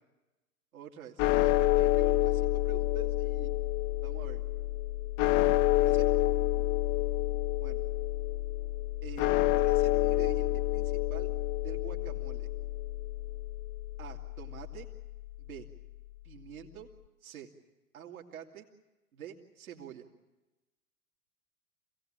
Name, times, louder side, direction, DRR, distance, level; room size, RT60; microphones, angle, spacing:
voice 1, 0.7-3.5 4.0-4.4 5.8-6.1 7.6-7.8 9.0-11.3 11.6-12.5 14.0-14.9 15.4-15.7 16.2-16.9 17.2-17.5 17.9-18.7 19.1-20.1, right 9 dB, 70° right, 0 dB, 2.5 m, -47 dB
sound 1, 1.2-15.4, left 16 dB, 35° left, 0.7 m, -29 dB
26.0 x 17.5 x 8.8 m, 1.1 s
figure-of-eight pair, 90°, 44 cm